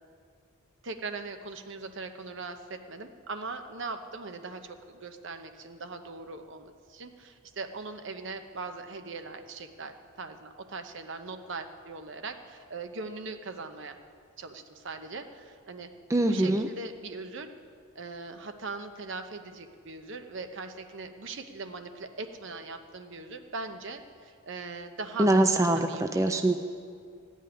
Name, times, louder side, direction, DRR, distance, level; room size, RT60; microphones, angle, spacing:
voice 1, 0.8-14.0 14.4-15.9 16.3-17.5 17.9-25.3 25.7-26.3, right 3 dB, 60° right, 7 dB, 0.9 m, -40 dB
voice 2, 16.1-16.7 25.2-26.5, right 1 dB, 15° right, 6 dB, 0.4 m, -23 dB
15.0 x 5.5 x 10.0 m, 2.2 s
head